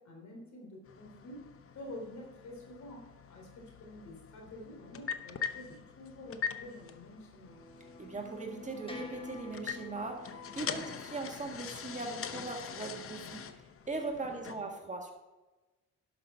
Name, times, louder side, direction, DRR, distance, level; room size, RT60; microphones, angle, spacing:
voice 1, 0.0-1.5 1.7-7.6 10.6-10.9 14.2-14.6, left 1 dB, 65° left, 0 dB, 3.5 m, -48 dB
sound 1, 0.9-14.5, left 7 dB, 45° left, 0.8 m, -43 dB
sound 2, 7.4-12.5, left 3 dB, 15° left, 1.5 m, -49 dB
voice 2, 8.0-13.4 13.9-15.1, right 3 dB, 25° right, 2 dB, 1.6 m, -39 dB
11.5 x 6.0 x 5.5 m, 1.1 s
cardioid pair, 90°, 30 cm